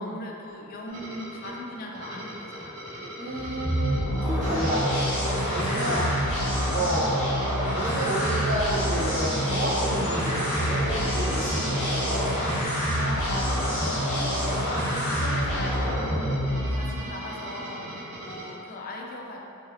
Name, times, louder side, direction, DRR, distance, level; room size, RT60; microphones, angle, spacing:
voice 1, 0.0-2.8 5.9-6.2 12.9-16.0 16.5-19.4, left 2 dB, 40° left, 0 dB, 0.3 m, -38 dB
sound 1, 0.9-18.5, right 1 dB, 85° right, 0.8 m, -40 dB
voice 2, 3.2-5.1 5.5-6.0 6.7-7.1 7.7-12.3, right 1 dB, 35° right, -8 dB, 0.6 m, -30 dB
sound 2, 3.3-17.1, equal, 65° left, 0.7 m, -27 dB
3.1 x 2.4 x 2.8 m, 2.6 s
head